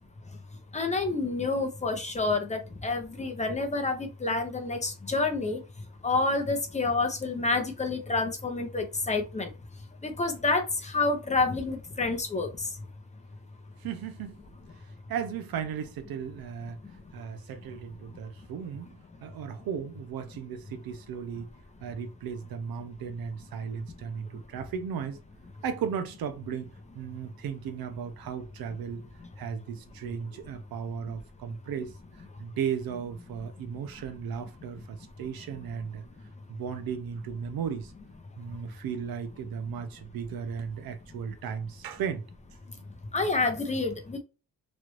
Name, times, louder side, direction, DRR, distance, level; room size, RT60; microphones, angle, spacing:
voice 1, 0.7-5.6 6.0-9.5 10.0-12.7 43.1-44.2, left 3 dB, 20° left, 0.6 m, -28 dB
voice 2, 13.8-14.4 15.1-16.8 17.1-21.5 21.8-25.2 25.6-29.0 29.4-36.0 36.5-37.9 38.4-42.2 42.8-42.9, right 7 dB, 90° right, 0.7 m, -36 dB
3.1 x 2.5 x 3.0 m
cardioid pair, 140°, 35 cm